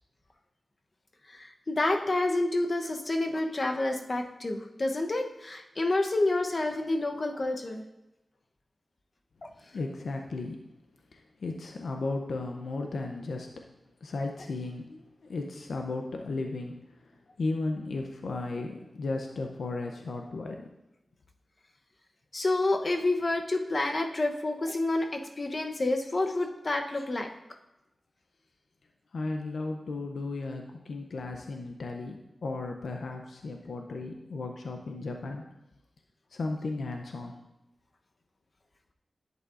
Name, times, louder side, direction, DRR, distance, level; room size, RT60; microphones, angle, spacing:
voice 1, 1.3-7.8 22.3-27.3, left 2 dB, 45° left, 4 dB, 0.9 m, -29 dB
voice 2, 9.7-10.6 11.1-13.5 14.0-16.8 17.0-17.1 17.4-20.7 29.1-35.4 36.3-37.4, left 3 dB, 90° left, 3 dB, 0.6 m, -35 dB
11.0 x 8.2 x 2.5 m, 0.92 s
wide cardioid pair, 90°, 0 cm